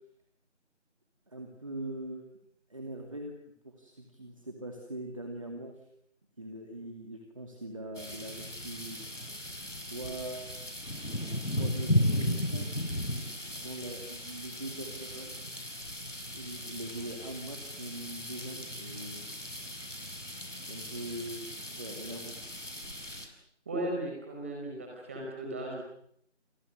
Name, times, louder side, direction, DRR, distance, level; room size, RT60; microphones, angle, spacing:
voice 1, 1.3-2.3 2.7-3.4 3.6-5.9 6.4-9.0 9.9-10.6 11.6-12.9 13.5-15.4 16.3-19.2 20.6-22.4, right 1 dB, 25° right, 3 dB, 2.5 m, -42 dB
sound 1, 8.0-23.3, left 1 dB, 90° left, 7.2 m, -36 dB
voice 2, 23.6-25.8, right 1 dB, 10° right, -1 dB, 5.1 m, -36 dB
29.0 x 28.5 x 6.6 m, 0.71 s
figure-of-eight pair, 170°, 36 cm